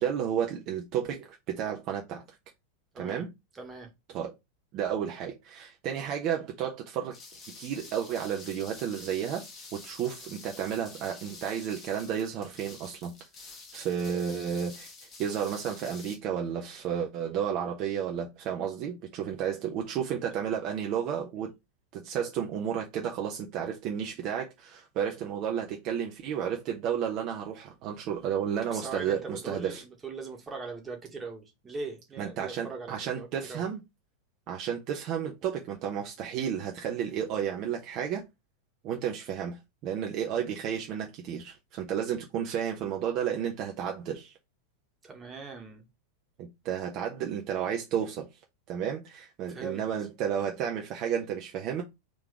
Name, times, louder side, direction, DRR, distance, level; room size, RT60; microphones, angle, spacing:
voice 1, 0.0-2.2 3.0-3.3 4.1-4.3 4.7-7.2 7.6-9.4 9.7-13.1 13.7-21.5 21.9-29.8 32.2-33.8 34.5-38.2 38.8-44.3 46.4-48.3 48.7-51.8, right 8 dB, 40° right, 0.8 m, -32 dB
voice 2, 2.9-3.2 3.5-3.9 28.6-33.6 45.0-45.9 49.5-49.8, right 4 dB, 15° right, 1.4 m, -40 dB
sound 1, 7.1-16.2, left 3 dB, 25° left, 1.5 m, -48 dB
3.8 x 3.5 x 3.4 m
figure-of-eight pair, 90°, 0 cm